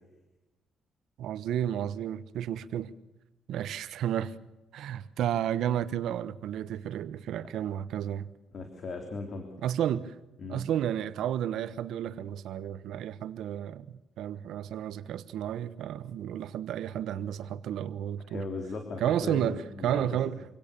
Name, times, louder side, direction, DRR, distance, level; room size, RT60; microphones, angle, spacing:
voice 1, 1.2-2.9 3.5-4.4 4.7-8.3 9.6-10.2 10.5-18.4 19.0-20.4, right 10 dB, 80° right, 1.1 m, -32 dB
voice 2, 8.5-9.5 10.4-10.6 18.3-20.2, left 3 dB, 50° left, 3.5 m, -37 dB
26.5 x 17.5 x 6.9 m
cardioid pair, 90°, 0 cm